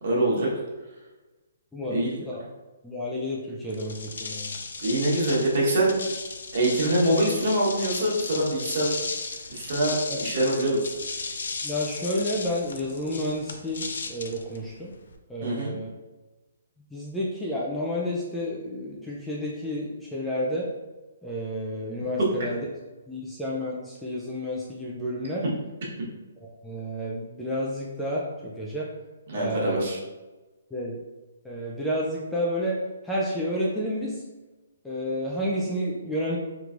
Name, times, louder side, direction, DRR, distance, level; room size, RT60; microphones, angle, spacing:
voice 1, 0.0-0.5 1.9-2.2 4.8-5.9 6.5-8.9 9.5-10.9 15.4-15.7 22.2-22.3 29.3-30.0, right 1 dB, 45° right, -4 dB, 1.2 m, -24 dB
voice 2, 1.7-2.4 2.8-4.5 10.1-10.2 11.6-14.9 15.3-15.9 16.9-20.7 21.2-22.7 23.1-25.4 26.6-28.9 29.3-29.8 30.7-31.0 31.4-32.8 33.0-34.2 34.8-36.4, equal, 5° left, -6 dB, 0.3 m, -30 dB
sound 1, 3.7-15.2, left 4 dB, 70° left, 0.4 m, -35 dB
3.2 x 3.0 x 2.5 m, 1.1 s
hypercardioid pair, 165°, 0 cm